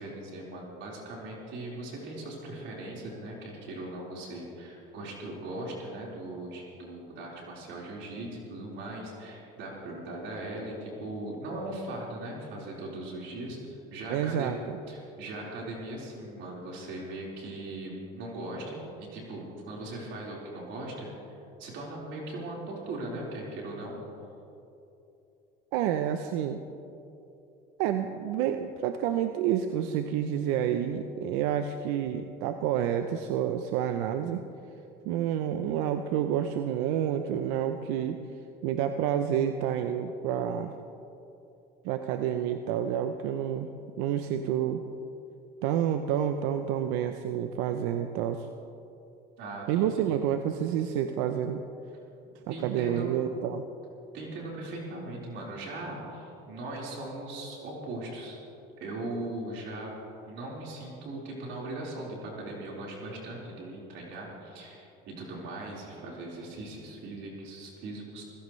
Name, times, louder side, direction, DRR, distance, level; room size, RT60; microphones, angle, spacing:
voice 1, 0.0-14.6 14.9-24.0 49.4-49.8 52.5-53.1 54.1-58.4 58.8-59.9 60.3-68.2, right 2 dB, 65° right, -4 dB, 4.5 m, -39 dB
voice 2, 14.1-14.8 25.7-26.6 27.8-34.4 35.0-38.2 38.6-40.7 41.8-43.7 44.0-44.8 45.6-48.5 49.7-51.6 52.5-53.6, right 10 dB, 80° right, 8 dB, 0.7 m, -29 dB
25.5 x 16.0 x 3.2 m, 2.8 s
supercardioid pair, 100°, 21 cm